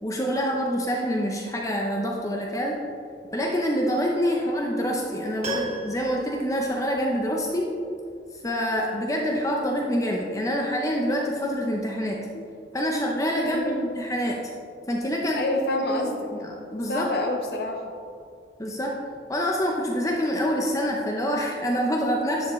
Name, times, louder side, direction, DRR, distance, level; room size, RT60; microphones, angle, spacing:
voice 1, 0.0-2.8 3.3-7.7 8.4-12.2 12.7-14.4 14.9-15.4 16.0-17.1 18.6-19.0 19.3-22.5, equal, 20° left, -1 dB, 0.7 m, -26 dB
Piano, 5.4-7.5 7.8-7.9, right 1 dB, 40° right, 1.8 m, -36 dB
voice 2, 13.4-13.9 15.3-16.3 16.9-17.9, left 1 dB, 60° left, 2 dB, 0.7 m, -28 dB
10.5 x 7.1 x 3.2 m, 2.4 s
head